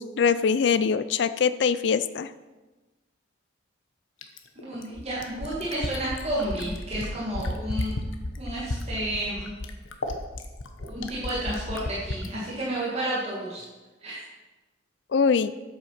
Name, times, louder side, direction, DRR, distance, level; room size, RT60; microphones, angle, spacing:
voice 1, 0.0-2.3 15.1-15.5, left 6 dB, 60° left, 14 dB, 0.4 m, -23 dB
Fill (with liquid), 4.2-12.3 13.6-13.7, left 2 dB, 90° left, 1.0 m, -33 dB
voice 2, 4.6-8.0 8.4-9.5 10.8-13.6 14.0-14.2, right 1 dB, 35° right, -7 dB, 1.9 m, -31 dB
8.3 x 7.9 x 5.7 m, 1.2 s
head